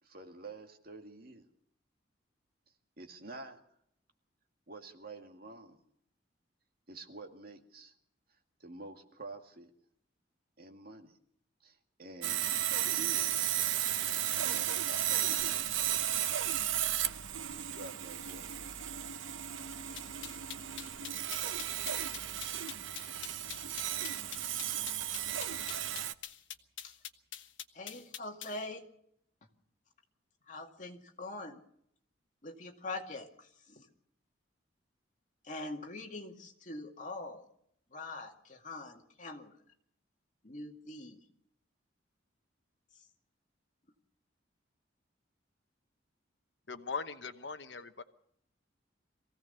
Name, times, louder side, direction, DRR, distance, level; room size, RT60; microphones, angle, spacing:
voice 1, 0.0-1.5 3.0-3.6 4.7-5.8 6.9-7.9 8.6-9.7 10.6-11.2 11.6-12.5 12.9-13.6 14.3-15.1 17.5-18.6, right 2 dB, 50° right, 4 dB, 2.2 m, -49 dB
Sawing, 12.2-26.1, right 11 dB, 85° right, 0.8 m, -34 dB
sound 1, 15.6-26.9, left 1 dB, 20° right, 3.3 m, -59 dB
sound 2, 20.0-28.6, left 10 dB, 85° left, 1.3 m, -44 dB
voice 2, 27.7-28.9 30.5-31.6 32.4-33.9 35.4-37.4 37.9-39.5 40.4-41.2, left 2 dB, 40° left, 3 dB, 2.3 m, -43 dB
voice 3, 46.7-48.0, left 5 dB, 65° left, 9 dB, 1.1 m, -40 dB
23.5 x 16.5 x 6.8 m, 0.69 s
head